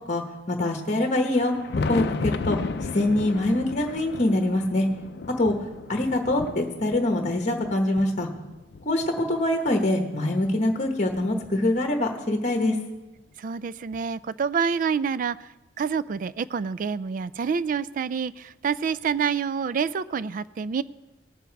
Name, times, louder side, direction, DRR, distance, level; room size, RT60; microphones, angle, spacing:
voice 1, 0.1-1.5 1.9-4.9 5.4-5.5 5.9-8.3 8.8-12.8, left 1 dB, 40° left, 4 dB, 1.1 m, -24 dB
Thunder, 1.2-9.8 10.4-12.1 13.3-13.4 13.9-14.0 15.9-16.0 17.4-17.5 19.0-19.1, left 3 dB, 65° left, 0.5 m, -35 dB
voice 2, 13.4-15.5 15.8-20.8, right 6 dB, 50° right, 18 dB, 0.3 m, -27 dB
18.5 x 7.0 x 4.6 m, 1.1 s
head